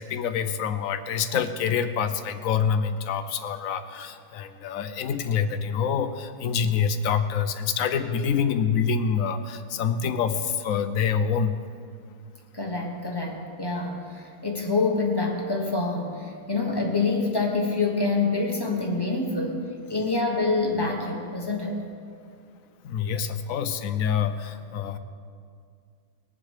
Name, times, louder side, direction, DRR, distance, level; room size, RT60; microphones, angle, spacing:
voice 1, 0.0-11.5 22.8-25.0, left 7 dB, 65° left, 9 dB, 1.1 m, -26 dB
voice 2, 12.5-19.6 19.9-21.8, left 3 dB, 15° left, 0 dB, 1.4 m, -26 dB
21.0 x 7.5 x 4.9 m, 2.2 s
omnidirectional pair, 1.7 m